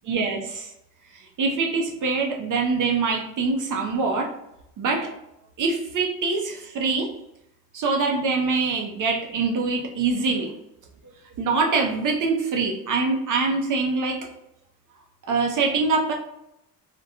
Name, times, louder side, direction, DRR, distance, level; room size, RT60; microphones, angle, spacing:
voice 1, 0.1-0.7 1.4-4.3 4.8-5.1 5.6-7.1 7.7-10.5 11.4-14.2 15.3-16.1, right 4 dB, 50° right, 2 dB, 0.5 m, -24 dB
2.9 x 2.1 x 2.4 m, 0.84 s
supercardioid pair, 75°, 42 cm